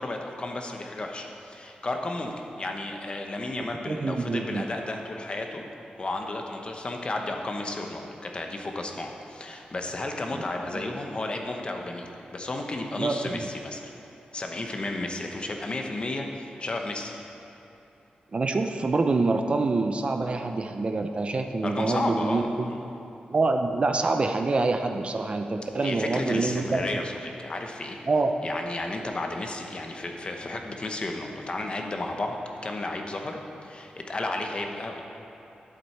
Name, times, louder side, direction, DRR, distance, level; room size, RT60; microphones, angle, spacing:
voice 1, 0.0-2.3 2.6-5.6 6.0-13.9 14.3-17.1 21.6-22.8 25.8-28.0 28.4-32.4 32.6-35.0, left 2 dB, 35° left, 3 dB, 0.9 m, -33 dB
voice 2, 3.9-4.6 10.3-10.4 13.0-13.1 18.3-22.7 23.3-26.8 28.1-28.3, right 3 dB, 35° right, 5 dB, 0.5 m, -26 dB
11.0 x 7.8 x 4.4 m, 3.0 s
wide cardioid pair, 130°, 3 cm